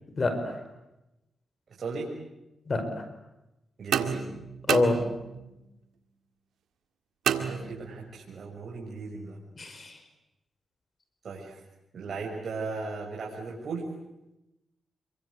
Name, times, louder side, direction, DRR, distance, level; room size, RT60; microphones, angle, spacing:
voice 1, 0.2-0.6 2.7-3.0 4.7-5.0 9.6-10.0, left 2 dB, 45° left, 8 dB, 5.4 m, -27 dB
voice 2, 3.8-4.2 7.3-9.4 11.2-11.6 11.9-13.8, right 4 dB, 60° right, -2 dB, 6.2 m, -36 dB
sound 1, 3.9-5.6 7.3-8.2, right 8 dB, 90° right, 1.9 m, -30 dB
27.5 x 23.5 x 8.2 m, 0.92 s
cardioid pair, 70°, 0 cm